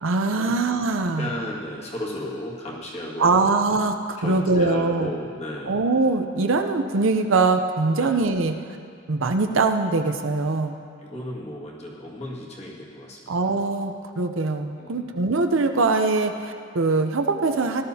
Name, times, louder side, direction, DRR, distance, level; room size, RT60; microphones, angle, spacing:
voice 1, 0.0-1.3 3.2-5.1 5.7-8.6 9.1-10.8 13.3-17.8, right 3 dB, 85° right, 5 dB, 0.7 m, -22 dB
voice 2, 1.2-3.3 4.2-5.8 7.9-8.1 11.0-13.5 14.8-15.1, left 1 dB, 35° left, -4 dB, 1.9 m, -34 dB
18.0 x 12.5 x 2.8 m, 2.3 s
head